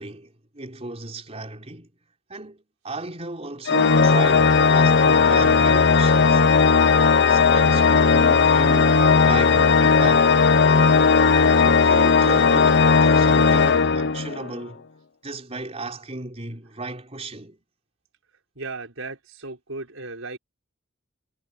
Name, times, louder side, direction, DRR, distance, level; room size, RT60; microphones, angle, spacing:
voice 1, 0.0-1.9 2.3-6.5 7.3-10.4 11.3-14.8 15.2-17.6, right 2 dB, 30° right, 4.4 m, -35 dB
Organ, 3.7-14.5, left 5 dB, 55° left, 0.7 m, -17 dB
voice 2, 18.6-20.4, right 3 dB, 70° right, 5.7 m, -35 dB
head